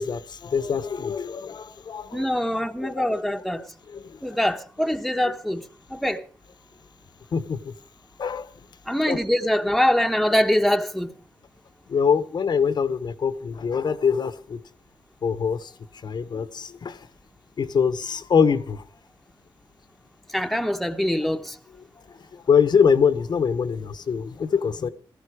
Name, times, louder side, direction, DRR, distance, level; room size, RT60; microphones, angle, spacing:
voice 1, 0.0-2.3 2.8-3.2 3.9-4.2 7.3-7.7 8.2-8.5 9.0-9.2 10.3-10.4 11.9-14.6 15.2-15.7 16.0-17.0 17.6-18.8 22.5-24.9, left 6 dB, 60° left, 1.1 m, -24 dB
voice 2, 2.1-3.6 4.2-6.2 8.9-11.1 20.3-21.6, equal, ahead, 1.1 m, -24 dB
16.5 x 14.5 x 4.9 m
cardioid pair, 105°, 9 cm